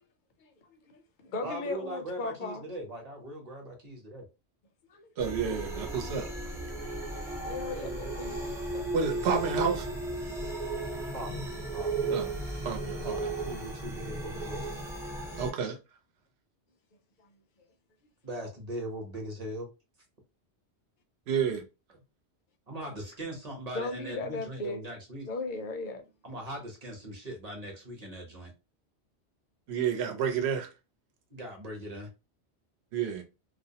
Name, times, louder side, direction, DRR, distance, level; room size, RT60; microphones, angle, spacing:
voice 1, 0.4-2.6 4.9-5.1 6.9-7.0 7.4-9.1 15.0-15.2 16.9-17.7 23.7-24.8 25.2-26.1, left 3 dB, 55° left, 0.6 m, -38 dB
voice 2, 1.4-4.2 7.7-8.1 11.1-11.4 11.7-12.1 13.0-14.6 18.2-19.7 22.7-25.3 26.2-28.5 31.3-32.1, right 1 dB, 40° right, 0.9 m, -40 dB
sound 1, 5.2-15.5, right 2 dB, 5° right, 0.5 m, -35 dB
voice 3, 5.2-6.3 8.9-9.9 11.3-11.4 12.1-12.3 12.6-13.1 15.3-15.8 21.3-21.7 29.7-30.7 32.9-33.2, right 7 dB, 70° right, 0.9 m, -30 dB
2.4 x 2.0 x 2.7 m
omnidirectional pair, 1.2 m